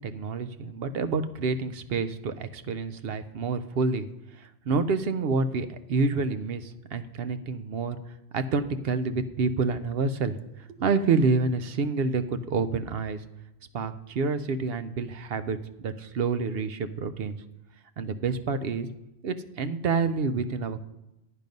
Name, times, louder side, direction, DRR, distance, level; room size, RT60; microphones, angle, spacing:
voice 1, 0.0-4.1 4.3-8.0 8.3-10.4 10.8-13.2 13.7-17.4 18.0-18.9 19.2-20.8, right 4 dB, 65° right, 10 dB, 0.8 m, -28 dB
10.5 x 6.6 x 5.3 m, 0.96 s
omnidirectional pair, 1.1 m